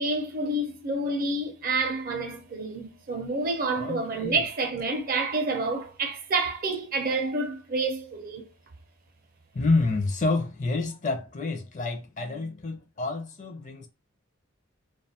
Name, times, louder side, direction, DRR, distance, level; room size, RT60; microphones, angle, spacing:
voice 1, 0.0-8.5, right 2 dB, 40° right, 0.5 m, -28 dB
voice 2, 3.7-4.4 9.5-13.9, left 3 dB, 35° left, 0.4 m, -28 dB
2.5 x 2.3 x 2.7 m
head